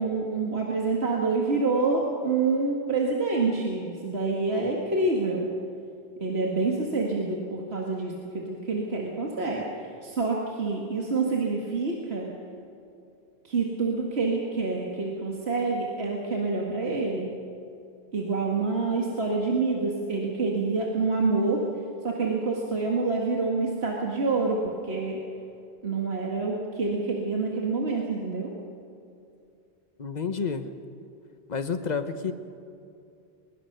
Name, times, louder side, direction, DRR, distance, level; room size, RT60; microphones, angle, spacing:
voice 1, 0.0-5.5 6.2-12.3 13.4-17.3 18.1-21.6 22.0-25.2 25.8-28.5, right 3 dB, 75° right, -1 dB, 2.2 m, -27 dB
voice 2, 30.0-30.7 31.5-32.3, left 5 dB, 40° left, 9 dB, 1.2 m, -29 dB
22.5 x 21.5 x 6.7 m, 2.5 s
omnidirectional pair, 1.1 m